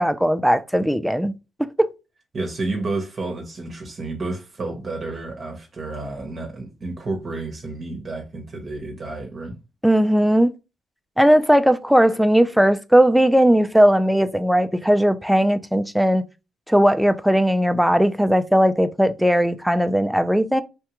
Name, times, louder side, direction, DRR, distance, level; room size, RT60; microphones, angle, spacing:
voice 1, 0.0-1.3 9.8-10.5 11.2-16.2 16.7-20.6, equal, ahead, 0.4 m, -18 dB
voice 2, 2.3-9.6, right 2 dB, 40° right, 0.8 m, -30 dB
3.3 x 2.2 x 2.9 m
cardioid pair, 90°, 0 cm